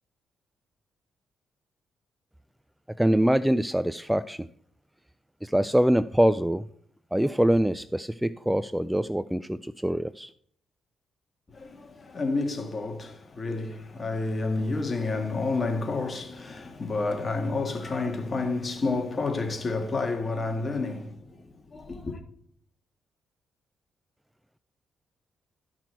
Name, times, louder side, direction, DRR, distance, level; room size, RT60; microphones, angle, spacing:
voice 1, 3.0-4.5 5.4-6.7 7.1-10.3, right 1 dB, 5° right, 0.3 m, -24 dB
voice 2, 11.5-22.2, left 3 dB, 35° left, 1.8 m, -30 dB
13.0 x 6.0 x 4.5 m
cardioid pair, 80°, 0 cm